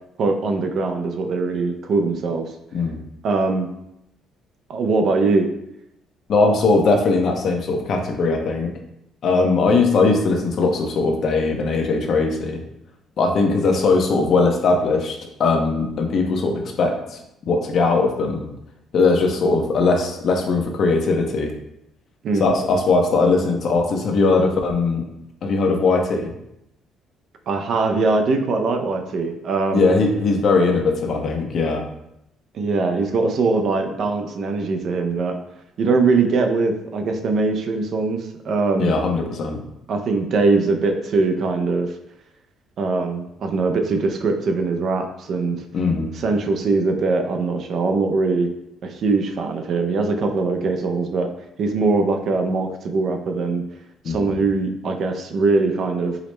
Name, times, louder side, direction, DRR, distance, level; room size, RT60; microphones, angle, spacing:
voice 1, 0.2-2.5 3.2-3.7 4.7-5.5 22.2-22.5 27.5-29.9 32.5-35.4 35.8-38.9 39.9-41.9 42.8-45.6 46.1-48.5 48.8-51.3 51.6-53.6 54.1-56.2, right 3 dB, 60° right, 5 dB, 0.5 m, -21 dB
voice 2, 6.3-8.7 9.2-12.6 13.2-17.2 17.5-18.5 18.9-21.5 22.4-25.1 25.4-26.3 29.7-31.8 38.8-39.6 45.7-46.1 54.0-54.3, left 3 dB, 60° left, 3 dB, 0.6 m, -19 dB
4.8 x 2.0 x 3.1 m, 0.81 s
cardioid pair, 85°, 0 cm